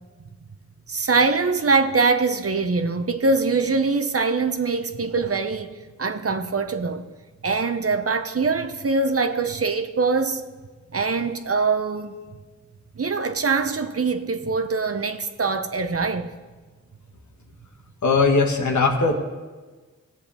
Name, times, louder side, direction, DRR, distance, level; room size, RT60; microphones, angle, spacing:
voice 1, 0.9-5.7 6.0-7.1 7.4-10.4 10.9-12.2 13.0-16.3, right 4 dB, 50° right, 0.9 m, -23 dB
voice 2, 18.0-19.1, left 4 dB, 70° left, 1.4 m, -19 dB
16.0 x 7.5 x 3.5 m
cardioid pair, 40°, 30 cm